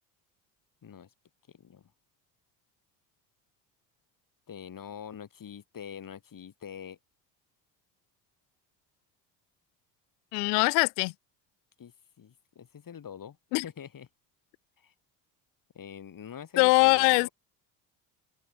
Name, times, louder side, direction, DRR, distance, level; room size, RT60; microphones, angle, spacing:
voice 1, 1.5-1.9 4.5-7.0 11.8-13.4 13.6-14.1 14.8-14.9 15.7-17.3, left 8 dB, 40° left, 4.4 m, -44 dB
voice 2, 10.3-11.1 13.5-13.6 16.6-17.3, left 34 dB, 80° left, 1.0 m, -22 dB
open air
hypercardioid pair, 65°, 48 cm